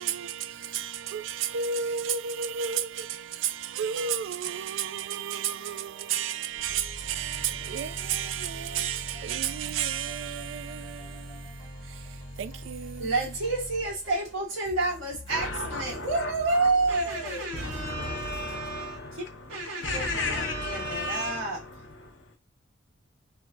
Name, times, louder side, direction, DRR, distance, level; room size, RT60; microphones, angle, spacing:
voice 1, 0.0-13.3, right 8 dB, 70° right, 0.3 m, -32 dB
sound 1, 4.9-18.6, left 1 dB, 20° left, 1.3 m, -51 dB
sound 2, 6.5-14.5, equal, 50° left, 1.0 m, -43 dB
voice 2, 13.0-19.2 19.5-21.6, right 3 dB, 90° right, 1.5 m, -29 dB
voice 3, 15.3-17.0 17.5-22.4, left 3 dB, 65° left, 0.7 m, -35 dB
3.4 x 2.3 x 2.6 m
head